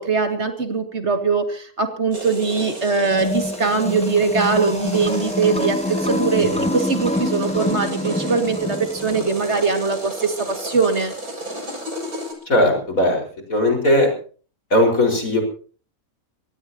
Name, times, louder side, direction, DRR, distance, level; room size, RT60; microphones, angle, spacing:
voice 1, 0.0-11.1, right 4 dB, 50° right, 6 dB, 2.4 m, -21 dB
sound 1, 2.1-12.3, right 1 dB, 85° right, 7.0 m, -33 dB
sound 2, 3.1-9.4, left 1 dB, 5° left, 0.5 m, -26 dB
voice 2, 12.5-13.2 13.5-14.1 14.7-15.4, left 1 dB, 70° left, 2 dB, 5.4 m, -18 dB
24.5 x 18.0 x 2.9 m, 0.41 s
omnidirectional pair, 1.5 m